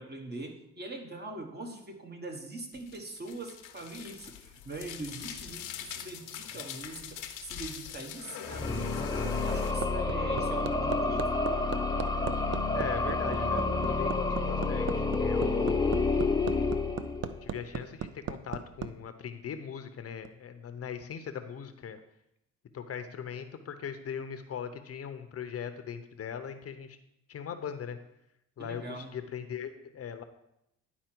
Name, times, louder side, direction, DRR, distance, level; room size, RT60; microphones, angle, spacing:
voice 1, 0.0-11.3 28.6-29.1, right 2 dB, 35° right, 4 dB, 1.3 m, -42 dB
sound 1, 2.7-9.7, left 9 dB, 85° left, 0.8 m, -43 dB
sound 2, 8.4-17.5, left 3 dB, 15° left, 0.7 m, -29 dB
Hammer, 9.0-18.9 20.2-20.3, right 9 dB, 55° right, 0.5 m, -37 dB
voice 2, 12.7-15.9 17.4-22.0 22.7-27.0 27.3-28.0 28.6-30.2, left 7 dB, 50° left, 9 dB, 0.7 m, -39 dB
10.5 x 4.3 x 4.5 m, 0.81 s
cardioid pair, 90°, 30 cm